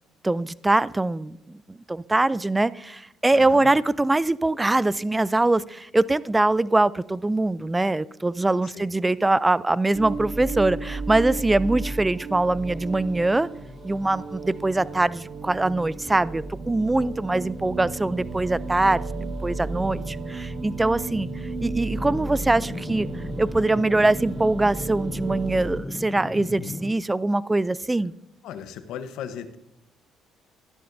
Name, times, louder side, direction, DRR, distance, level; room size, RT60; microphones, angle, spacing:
voice 1, 0.2-13.5 13.8-19.1 19.4-21.3 21.6-23.1 23.4-28.1, right 2 dB, 15° right, 19 dB, 0.4 m, -23 dB
voice 2, 3.3-3.7 8.6-8.9 26.3-26.8 28.4-29.6, left 8 dB, 75° left, 10 dB, 1.0 m, -37 dB
sound 1, 9.9-25.8, right 3 dB, 45° right, 1.6 m, -33 dB
sound 2, 21.9-26.9, left 2 dB, 15° left, 0.8 m, -36 dB
13.5 x 11.0 x 2.6 m, 0.82 s
supercardioid pair, 80°, 0 cm